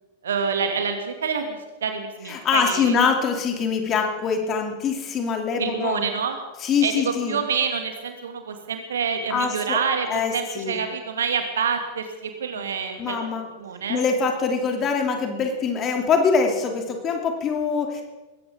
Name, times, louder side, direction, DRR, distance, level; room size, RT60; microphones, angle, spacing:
voice 1, 0.2-3.0 5.6-6.4 6.8-13.2 13.5-14.0, right 6 dB, 65° right, 5 dB, 2.3 m, -27 dB
voice 2, 2.3-6.0 6.6-7.4 9.3-9.8 10.1-10.8 12.6-12.7 13.0-13.4 13.9-18.0, left 5 dB, 30° left, 3 dB, 2.9 m, -24 dB
20.5 x 17.0 x 3.7 m, 1.2 s
figure-of-eight pair, 90°, 0 cm